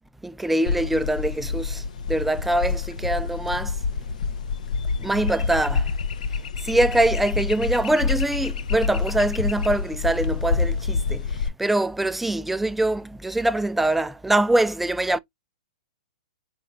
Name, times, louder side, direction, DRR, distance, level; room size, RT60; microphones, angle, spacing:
voice 1, 0.2-1.8 2.1-3.7 5.0-5.8 6.6-11.2 11.6-15.2, right 1 dB, 5° right, 0.3 m, -23 dB
sound 1, 0.7-11.5, left 5 dB, 70° left, 0.5 m, -27 dB
4.1 x 3.0 x 3.7 m
hypercardioid pair, 115°, 4 cm